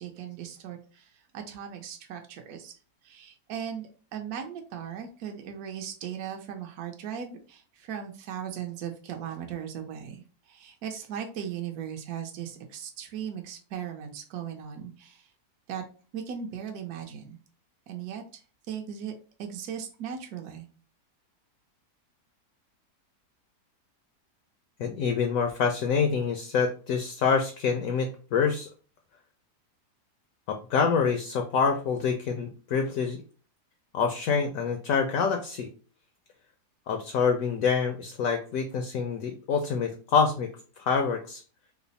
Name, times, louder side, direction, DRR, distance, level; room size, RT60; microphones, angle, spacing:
voice 1, 0.0-2.7 3.0-15.3 15.7-15.8 16.1-17.4 17.9-18.4 18.7-19.1 19.4-20.7, right 8 dB, 70° right, 3 dB, 1.1 m, -38 dB
voice 2, 24.8-28.7 30.5-33.2 33.9-35.7 36.9-40.5 40.8-41.4, left 6 dB, 70° left, 5 dB, 0.8 m, -26 dB
3.3 x 2.0 x 3.9 m, 0.38 s
omnidirectional pair, 1.8 m